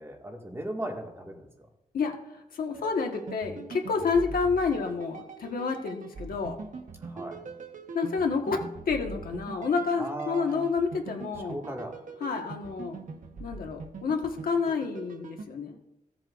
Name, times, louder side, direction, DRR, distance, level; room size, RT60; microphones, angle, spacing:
voice 1, 0.0-1.5 7.0-7.4 10.0-10.7 11.5-11.9, right 1 dB, 15° right, 0 dB, 1.9 m, -37 dB
voice 2, 1.9-6.6 7.9-8.6 8.9-11.6 12.2-13.0 13.4-15.8, left 5 dB, 85° left, 2 dB, 1.5 m, -29 dB
sound 1, 2.7-15.4, right 4 dB, 60° right, 1.1 m, -42 dB
16.0 x 7.6 x 2.5 m, 0.88 s
wide cardioid pair, 100°, 15 cm